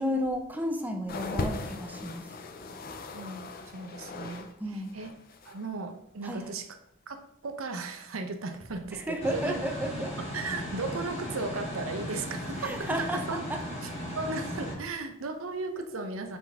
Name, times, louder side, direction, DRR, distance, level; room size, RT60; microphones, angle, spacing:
voice 1, 0.0-2.4 4.6-5.0 6.2-6.5 8.9-10.1 12.6-13.6, equal, 10° right, 4 dB, 0.6 m, -33 dB
sound 1, 1.1-4.5 4.8-5.7 6.4-6.5, left 3 dB, 45° left, 0.6 m, -38 dB
voice 2, 3.1-5.1 5.4-6.7 7.1-9.6 10.3-13.5 13.8-13.9 14.1-16.4, right 3 dB, 85° right, 6 dB, 0.7 m, -36 dB
sound 2, 9.2-14.7, equal, 30° left, 2.1 m, -37 dB
7.0 x 3.8 x 3.5 m, 0.72 s
head